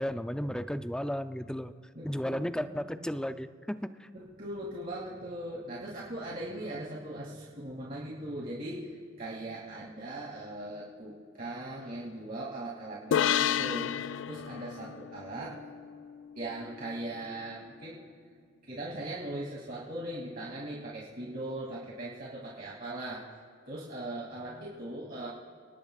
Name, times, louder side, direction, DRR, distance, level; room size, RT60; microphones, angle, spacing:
voice 1, 0.0-1.7 2.0-4.1, equal, 5° left, 10 dB, 0.5 m, -34 dB
voice 2, 1.9-3.1 4.1-13.9 14.3-15.6 16.4-18.0 18.7-23.2 23.7-25.3, right 1 dB, 50° right, -6 dB, 2.7 m, -39 dB
sound 1, 13.1-16.6, left 9 dB, 65° left, 0.3 m, -31 dB
29.5 x 19.0 x 2.4 m, 2.1 s
head